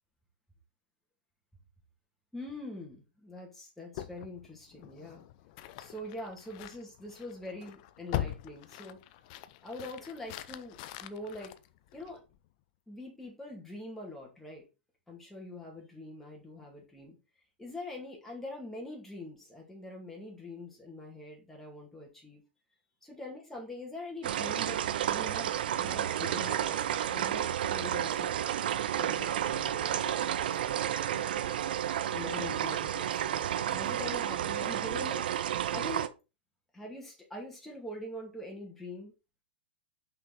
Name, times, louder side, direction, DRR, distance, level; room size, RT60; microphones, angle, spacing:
voice 1, 2.3-5.2 5.8-9.0 9.6-11.6 11.9-12.2 12.9-14.7 15.1-17.2 17.6-22.4 23.0-28.4 28.9-31.6 32.1-35.3 35.7-36.1 36.7-39.1, left 1 dB, 5° left, -2 dB, 2.3 m, -44 dB
sound 1, 3.9-12.4, left 13 dB, 45° left, 0.6 m, -42 dB
sound 2, 24.2-36.1, right 10 dB, 60° right, 0.6 m, -31 dB
5.8 x 5.5 x 4.1 m, 0.28 s
figure-of-eight pair, 105°, 6 cm